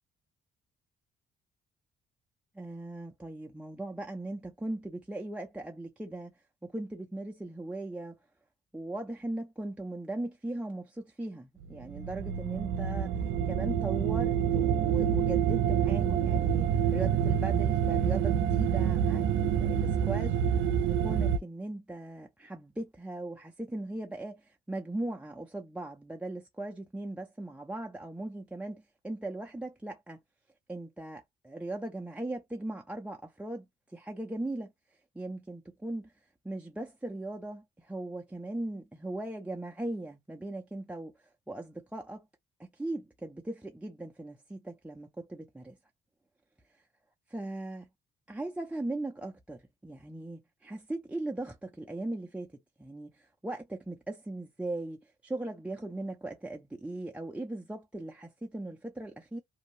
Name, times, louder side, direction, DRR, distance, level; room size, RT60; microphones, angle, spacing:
voice 1, 2.5-6.3 6.6-8.2 8.7-30.2 30.7-33.7 33.9-34.7 35.1-36.1 36.4-41.1 41.5-42.3 42.6-45.8 47.3-47.9 48.3-59.4, right 2 dB, 5° right, 0.4 m, -39 dB
sound 1, 11.6-21.4, right 9 dB, 75° right, 0.4 m, -27 dB
2.6 x 2.0 x 3.0 m
cardioid pair, 90°, 20 cm